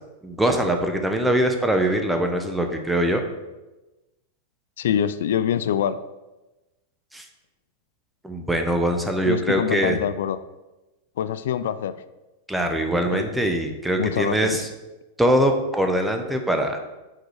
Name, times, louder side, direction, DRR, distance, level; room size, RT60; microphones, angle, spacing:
voice 1, 0.2-3.2 7.1-7.3 8.2-10.0 12.5-14.7 15.2-16.8, right 1 dB, 5° right, 4 dB, 0.8 m, -22 dB
voice 2, 4.8-6.0 9.3-10.4 11.2-11.9 13.1-13.3 14.0-14.5, left 9 dB, 75° left, 13 dB, 0.3 m, -24 dB
6.6 x 4.8 x 4.7 m, 1.1 s
supercardioid pair, 135°, 0 cm